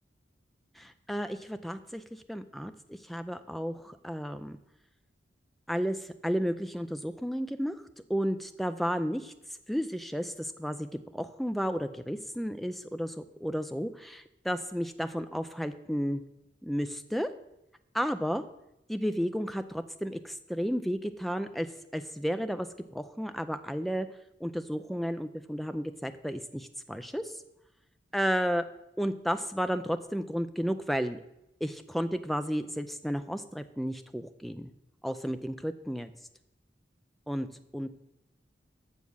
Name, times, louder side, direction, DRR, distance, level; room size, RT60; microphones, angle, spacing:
voice 1, 0.8-4.6 5.7-7.8 8.1-9.3 9.7-16.2 16.6-17.3 17.9-18.4 18.9-21.7 21.9-24.1 24.4-27.4 28.1-28.6 29.0-31.2 31.6-34.7 35.0-36.1 37.3-37.5 37.7-37.9, equal, ahead, 9 dB, 0.4 m, -32 dB
7.3 x 6.9 x 6.2 m, 0.85 s
head